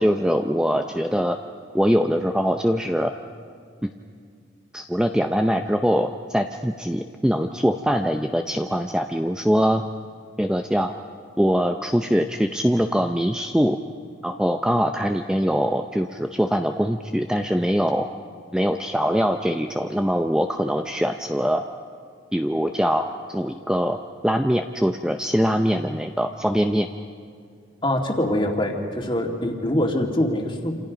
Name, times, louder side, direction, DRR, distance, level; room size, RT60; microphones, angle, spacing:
voice 1, 0.0-1.4 1.7-3.1 3.8-3.9 4.7-9.8 10.4-10.9 11.4-13.8 14.2-18.1 18.5-21.6 22.3-24.0 24.2-26.9, equal, 5° right, 5 dB, 0.6 m, -22 dB
voice 2, 27.8-30.8, left 1 dB, 25° left, 2 dB, 2.3 m, -24 dB
28.0 x 27.5 x 5.2 m, 2.2 s
head